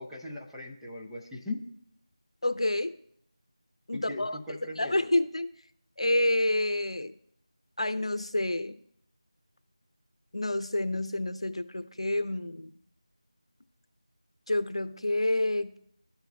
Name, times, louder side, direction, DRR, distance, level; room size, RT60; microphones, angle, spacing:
voice 1, 0.0-1.6 3.9-5.1, left 2 dB, ahead, -9 dB, 0.5 m, -39 dB
voice 2, 2.4-2.9 3.9-4.4 4.8-5.5 6.0-7.1 7.8-8.8 10.3-12.7 14.5-15.8, left 1 dB, 80° left, 12 dB, 0.7 m, -28 dB
13.0 x 4.5 x 2.3 m, 0.71 s
figure-of-eight pair, 170°, 3 cm